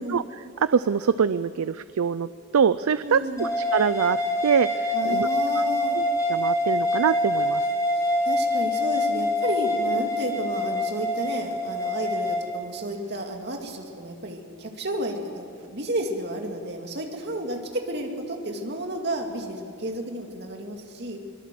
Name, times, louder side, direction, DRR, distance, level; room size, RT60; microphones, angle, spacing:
voice 1, 0.0-2.3 2.5-5.3 6.0-7.7, right 6 dB, 90° right, 15 dB, 0.5 m, -24 dB
voice 2, 3.0-3.5 4.9-6.0 8.0-21.2, right 1 dB, 50° right, 3 dB, 2.4 m, -32 dB
sound 1, 3.4-12.4, left 1 dB, 15° left, 5.8 m, -25 dB
23.0 x 20.5 x 7.7 m, 2.7 s
head